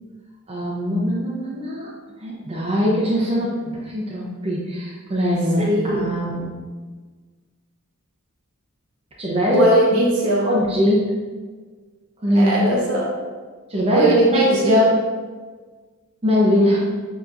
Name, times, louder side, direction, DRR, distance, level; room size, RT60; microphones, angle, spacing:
voice 1, 0.5-1.9 2.2-6.5 9.2-9.7 10.4-11.0 12.2-12.6 13.7-14.8 16.2-16.8, equal, 25° right, -4 dB, 0.7 m, -21 dB
voice 2, 5.6-6.1 9.5-10.5 12.3-13.1 13.9-14.9, right 1 dB, 70° right, -4 dB, 1.3 m, -19 dB
6.9 x 2.9 x 2.5 m, 1.4 s
head